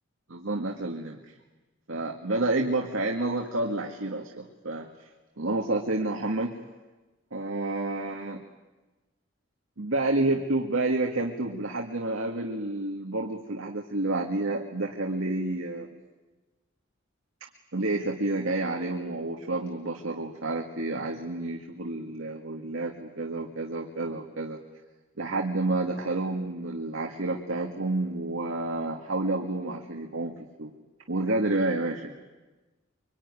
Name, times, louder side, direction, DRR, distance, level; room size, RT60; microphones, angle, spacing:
voice 1, 0.3-1.3 1.9-4.9 5.4-6.5 7.3-8.4 9.8-15.9 17.7-24.6 25.2-30.7 31.1-32.1, right 2 dB, 85° right, 1 dB, 1.9 m, -29 dB
25.0 x 24.0 x 9.7 m, 1.2 s
head